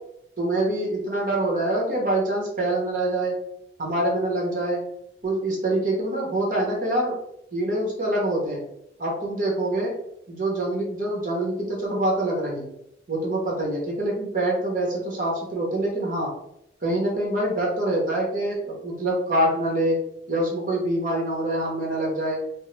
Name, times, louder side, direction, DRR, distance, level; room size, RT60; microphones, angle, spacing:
voice 1, 0.4-3.3 3.8-4.8 5.2-7.1 7.5-8.6 9.0-9.9 10.3-12.7 13.1-16.3 16.8-20.0 20.3-22.4, right 1 dB, 45° right, -2 dB, 0.9 m, -25 dB
3.4 x 2.0 x 3.2 m, 0.76 s
head